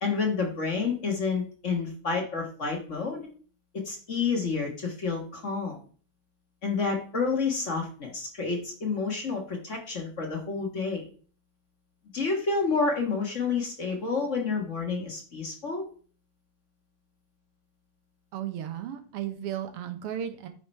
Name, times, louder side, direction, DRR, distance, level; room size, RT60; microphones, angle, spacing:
voice 1, 0.0-3.2 3.7-5.8 6.6-11.1 12.1-15.8, left 4 dB, 45° left, 1 dB, 1.0 m, -29 dB
voice 2, 18.3-20.5, right 10 dB, 65° right, 7 dB, 1.6 m, -34 dB
9.7 x 4.8 x 4.4 m, 0.42 s
omnidirectional pair, 3.3 m